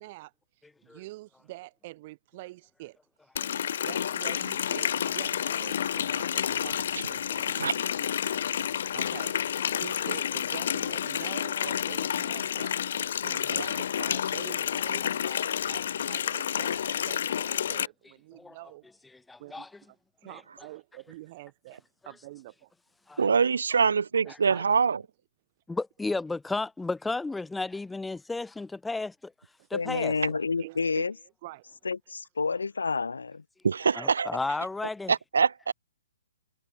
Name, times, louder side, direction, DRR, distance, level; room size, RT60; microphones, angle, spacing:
voice 1, 0.0-3.3 3.8-8.2 8.9-19.0 19.4-22.7 23.7-23.8 24.2-24.7 29.6-29.7 30.6-31.8, right 19 dB, 40° right, 8.0 m, -46 dB
Water tap faucet, 3.4-17.9, left 9 dB, 60° left, 0.4 m, -30 dB
voice 2, 19.3-19.7 23.1-23.2 25.7-29.3 29.7-30.1 33.9-35.1, left 3 dB, 5° left, 1.4 m, -33 dB
voice 3, 23.2-25.0 33.6-34.3 35.1-35.7, right 5 dB, 80° right, 0.8 m, -24 dB
voice 4, 29.7-31.1 31.9-33.4, left 4 dB, 90° left, 2.0 m, -29 dB
hypercardioid pair, 140°, 0 cm